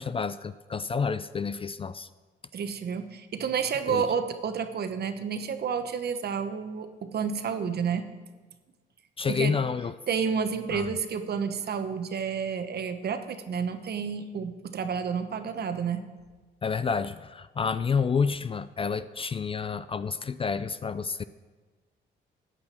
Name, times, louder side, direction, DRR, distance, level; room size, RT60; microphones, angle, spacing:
voice 1, 0.0-2.1 3.9-4.0 9.2-9.9 10.7-10.9 16.6-21.2, left 5 dB, 30° left, 14 dB, 0.4 m, -29 dB
voice 2, 2.5-8.1 9.3-9.6 10.1-16.0, right 6 dB, 55° right, 8 dB, 1.0 m, -30 dB
14.5 x 8.7 x 4.3 m, 1.3 s
cardioid pair, 90°, 20 cm